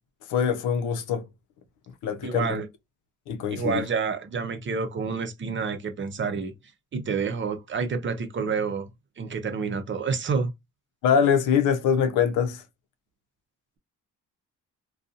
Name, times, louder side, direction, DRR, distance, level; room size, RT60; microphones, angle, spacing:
voice 1, 0.3-1.3 2.0-2.6 3.3-3.8 11.0-12.6, left 7 dB, 85° left, 0.6 m, -23 dB
voice 2, 2.2-2.7 3.5-6.5 6.9-8.9 9.2-10.5, right 5 dB, 40° right, 0.7 m, -28 dB
2.6 x 2.3 x 2.5 m
cardioid pair, 90°, 30 cm